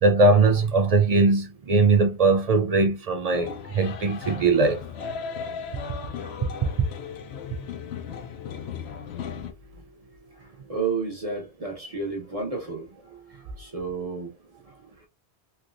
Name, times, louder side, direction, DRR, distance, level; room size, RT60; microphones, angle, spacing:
voice 1, 0.0-4.8, right 3 dB, 60° right, 0.4 m, -20 dB
sound 1, 3.3-9.5, left 6 dB, 70° left, 0.8 m, -36 dB
voice 2, 10.4-12.9 13.6-14.3 14.7-14.9, right 4 dB, 35° right, 0.8 m, -31 dB
3.1 x 2.8 x 2.5 m
omnidirectional pair, 1.2 m